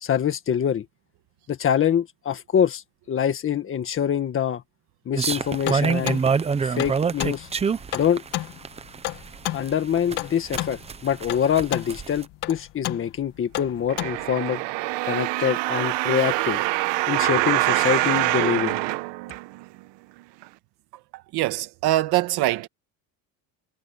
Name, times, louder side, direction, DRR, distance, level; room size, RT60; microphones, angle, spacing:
voice 1, 0.0-0.8 1.5-4.6 5.0-6.2 6.6-7.5 7.9-8.2 9.5-14.6 15.0-16.6 17.1-18.8, left 9 dB, 30° left, 1.7 m, -25 dB
sound 1, 5.2-12.2, right 5 dB, 15° right, 0.6 m, -26 dB
sound 2, 5.7-14.3, left 16 dB, 65° left, 1.6 m, -32 dB
sound 3, 13.9-19.8 20.4-20.5, right 20 dB, 90° right, 1.1 m, -25 dB
voice 2, 21.3-22.7, right 16 dB, 65° right, 1.5 m, -23 dB
cardioid pair, 165°, 41 cm